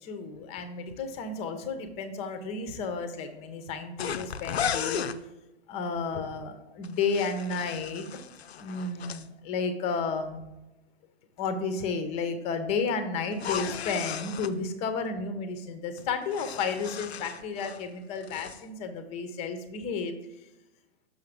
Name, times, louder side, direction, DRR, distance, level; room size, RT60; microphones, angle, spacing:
voice 1, 0.0-5.1 5.7-8.1 8.6-10.5 11.4-20.1, left 4 dB, 20° left, 9 dB, 0.6 m, -32 dB
sound 1, 4.0-5.2 6.8-9.2 13.3-14.5 16.0-17.9 18.2-18.6, left 8 dB, 70° left, 0.5 m, -35 dB
6.2 x 5.6 x 3.5 m, 0.96 s
figure-of-eight pair, 115°, 33 cm